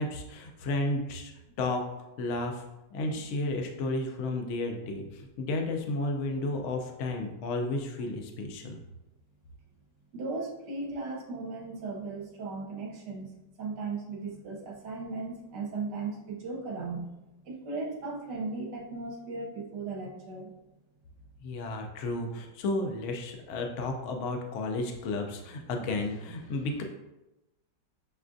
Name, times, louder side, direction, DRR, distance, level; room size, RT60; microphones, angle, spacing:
voice 1, 0.0-1.3 1.6-1.8 2.2-2.7 2.9-8.8 21.4-26.8, left 2 dB, 80° left, 3 dB, 0.6 m, -32 dB
voice 2, 10.1-13.3 13.6-17.1 17.4-20.5, right 3 dB, 70° right, -1 dB, 1.3 m, -37 dB
6.6 x 2.4 x 2.5 m, 0.96 s
omnidirectional pair, 2.0 m